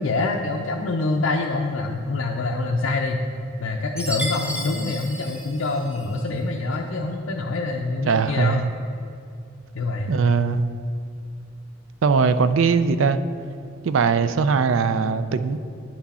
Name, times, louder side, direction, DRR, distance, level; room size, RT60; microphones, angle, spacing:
voice 1, 0.0-3.2 3.6-8.6 9.7-10.1, left 3 dB, 75° left, 1 dB, 0.5 m, -25 dB
Chime, 4.0-6.3, equal, 5° right, 0.7 m, -33 dB
voice 2, 8.1-8.6 10.1-10.6 12.0-13.2 13.8-15.6, right 5 dB, 70° right, 12 dB, 0.4 m, -20 dB
9.9 x 6.0 x 4.2 m, 2.5 s
head